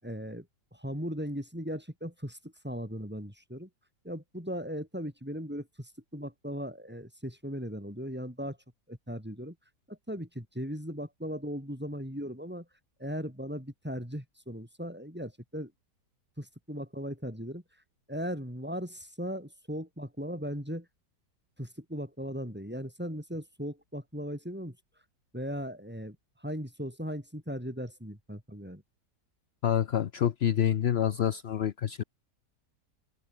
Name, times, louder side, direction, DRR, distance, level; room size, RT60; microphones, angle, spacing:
voice 1, 0.0-3.7 4.0-8.6 8.9-9.6 9.9-12.7 13.0-15.7 16.4-17.6 18.1-20.9 21.6-24.8 25.3-28.8, equal, 5° right, 7.6 m, -38 dB
voice 2, 29.6-32.0, left 9 dB, 60° left, 0.7 m, -27 dB
omnidirectional pair, 1.9 m